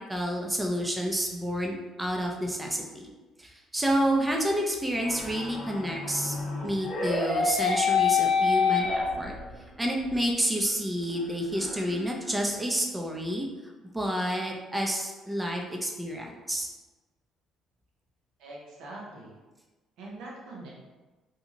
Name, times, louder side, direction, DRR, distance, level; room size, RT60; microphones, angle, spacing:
voice 1, 0.1-3.1 3.4-6.4 6.6-9.3 9.8-13.5 13.9-16.7, equal, 15° right, 0 dB, 0.6 m, -29 dB
sound 1, 5.0-9.6 10.1-10.2 10.7-10.8 11.1-12.3, left 5 dB, 55° left, 0.6 m, -27 dB
voice 2, 18.4-19.3 20.0-20.7, right 2 dB, 75° right, -4 dB, 0.7 m, -43 dB
2.7 x 2.4 x 2.8 m, 1.2 s
supercardioid pair, 65°, 0 cm